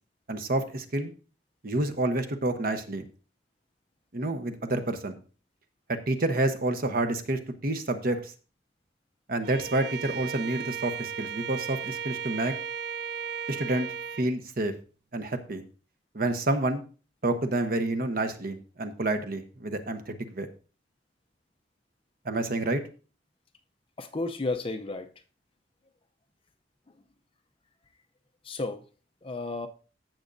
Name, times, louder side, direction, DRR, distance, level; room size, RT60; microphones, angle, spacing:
voice 1, 0.3-1.1 1.6-3.1 4.1-5.2 5.9-8.3 9.3-12.5 13.5-13.9 14.2-14.7 15.1-15.6 16.1-16.8 17.2-20.5 22.2-22.8, right 2 dB, 55° right, 0.9 m, -29 dB
Bowed string instrument, 9.4-14.3, right 7 dB, 70° right, 0.3 m, -35 dB
voice 2, 24.0-25.1 28.4-28.9 29.2-29.7, left 2 dB, 30° left, 0.6 m, -32 dB
15.0 x 6.1 x 2.6 m
head